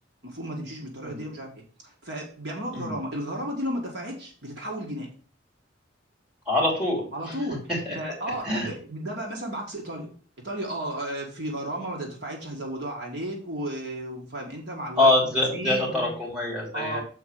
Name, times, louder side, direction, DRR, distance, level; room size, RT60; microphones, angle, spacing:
voice 1, 0.2-5.1 7.1-10.1 10.4-16.1 16.7-17.0, right 1 dB, 55° right, 0 dB, 1.8 m, -34 dB
voice 2, 6.5-7.3 7.8-8.0 8.4-8.7 15.0-17.0, left 2 dB, 5° right, -2 dB, 3.1 m, -24 dB
7.1 x 4.4 x 6.5 m, 0.42 s
head